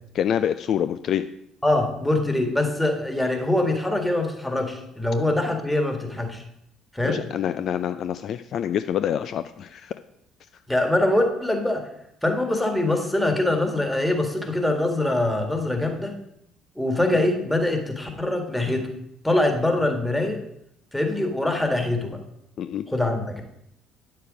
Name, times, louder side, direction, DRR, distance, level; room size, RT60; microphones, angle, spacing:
voice 1, 0.1-1.3 7.0-9.9 22.6-22.9, left 9 dB, 50° left, 11 dB, 0.3 m, -26 dB
voice 2, 1.6-6.4 6.9-7.2 10.7-11.8 12.2-16.1 16.8-18.9 19.2-20.4 20.9-22.2 22.9-23.4, left 1 dB, 5° left, 4 dB, 1.8 m, -23 dB
9.4 x 6.7 x 5.0 m, 0.76 s
figure-of-eight pair, 50°, 0 cm